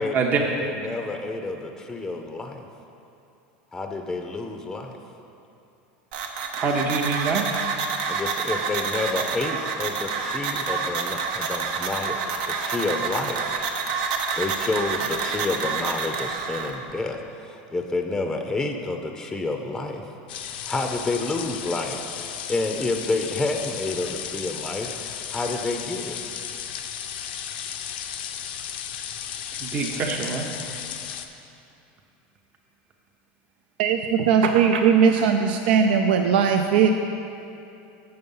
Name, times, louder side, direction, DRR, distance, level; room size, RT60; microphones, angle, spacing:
voice 1, 0.0-2.6 3.7-4.9 8.1-12.2 12.5-13.6 14.4-20.0 20.7-26.2, left 3 dB, 10° left, 4 dB, 0.5 m, -29 dB
sound 1, 6.1-16.7, right 5 dB, 70° right, 0.8 m, -28 dB
voice 2, 6.5-7.4 29.6-30.5, right 5 dB, 35° right, 1 dB, 0.7 m, -25 dB
sound 2, 20.3-31.3, left 9 dB, 90° left, 0.5 m, -34 dB
voice 3, 33.8-36.9, right 7 dB, 90° right, 5 dB, 0.4 m, -19 dB
6.7 x 6.6 x 5.4 m, 2.7 s
supercardioid pair, 135°, 5 cm